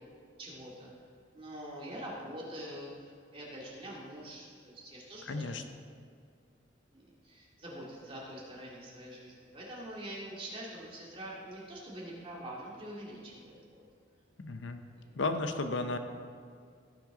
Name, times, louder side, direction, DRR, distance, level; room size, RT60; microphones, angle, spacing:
voice 1, 0.4-0.9 1.3-5.6 6.9-13.8 14.9-15.1, right 1 dB, 30° right, -5 dB, 2.1 m, -45 dB
voice 2, 5.2-5.6 14.4-14.8 15.2-16.0, left 3 dB, 80° left, 8 dB, 0.7 m, -34 dB
16.5 x 6.0 x 3.7 m, 2.1 s
head